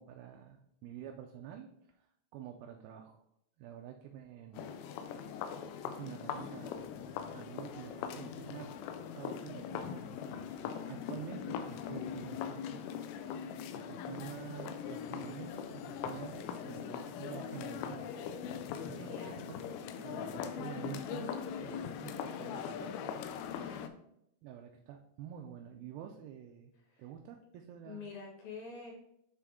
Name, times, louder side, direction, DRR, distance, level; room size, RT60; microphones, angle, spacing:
voice 1, 0.0-1.7 2.0-2.1 2.3-3.2 3.6-4.8 5.8-6.9 7.3-10.1 10.5-12.8 13.7-18.1 18.9-19.2 19.5-19.7 20.0-22.9 24.4-26.7 27.0-28.1, right 10 dB, 80° right, 3 dB, 2.2 m, -48 dB
sound 1, 4.5-23.9, left 7 dB, 80° left, 2.3 m, -41 dB
voice 2, 19.0-19.4 23.5-23.9 26.8-27.1 27.8-28.9, left 4 dB, 65° left, -1 dB, 3.1 m, -47 dB
8.3 x 3.3 x 3.6 m, 0.76 s
omnidirectional pair, 4.6 m